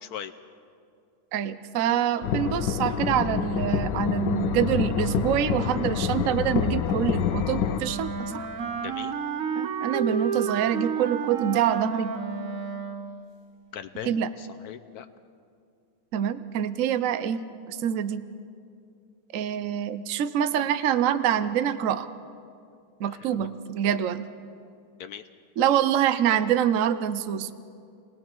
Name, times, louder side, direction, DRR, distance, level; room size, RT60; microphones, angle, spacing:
voice 1, 0.0-0.3 8.8-9.1 13.7-15.1 23.1-23.5 25.0-25.2, left 9 dB, 80° left, 9 dB, 0.8 m, -39 dB
voice 2, 1.3-8.5 9.5-12.1 14.1-14.3 16.1-17.4 17.7-18.2 19.3-22.1 23.0-24.3 25.6-27.5, right 9 dB, 80° right, 12 dB, 0.7 m, -25 dB
sound 1, 2.2-7.8, left 8 dB, 65° left, 1.3 m, -27 dB
Wind instrument woodwind instrument, 7.7-13.3, right 6 dB, 50° right, 1.1 m, -31 dB
29.5 x 19.5 x 4.5 m, 2.4 s
omnidirectional pair, 2.3 m